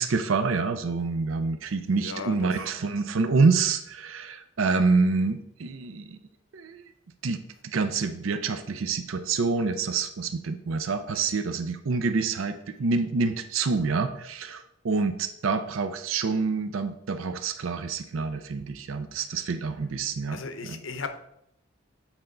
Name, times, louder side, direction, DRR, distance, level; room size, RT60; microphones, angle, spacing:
voice 1, 0.0-6.2 6.5-6.8 7.2-20.8, right 4 dB, 90° right, 10 dB, 0.5 m, -27 dB
voice 2, 1.9-2.6 20.3-21.1, left 4 dB, 75° left, 8 dB, 0.7 m, -36 dB
8.0 x 4.3 x 3.8 m, 0.76 s
head